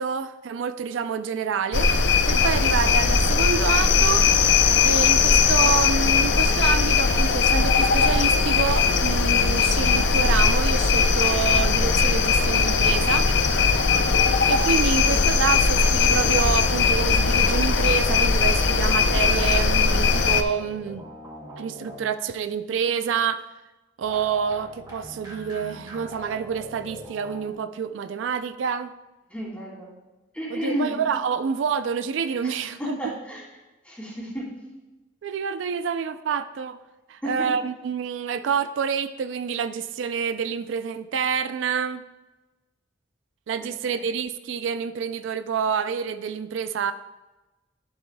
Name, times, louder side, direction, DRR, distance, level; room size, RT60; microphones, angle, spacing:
voice 1, 0.0-1.9 2.3-4.3 4.8-13.3 14.5-21.0 21.6-23.4 24.0-28.9 30.5-33.0 35.2-36.8 37.1-42.0 43.5-46.9, right 6 dB, 85° right, 11 dB, 0.4 m, -27 dB
sound 1, 1.7-20.4, left 5 dB, 70° left, 0.5 m, -19 dB
sound 2, 12.4-14.4 16.0-22.4 24.0-27.5, equal, 25° right, 2.5 m, -41 dB
voice 2, 29.3-29.9 30.3-31.0 32.4-33.4 33.8-34.5 37.2-37.5 43.6-44.0, equal, 5° left, -5 dB, 2.8 m, -32 dB
11.5 x 7.3 x 2.2 m, 1.1 s
head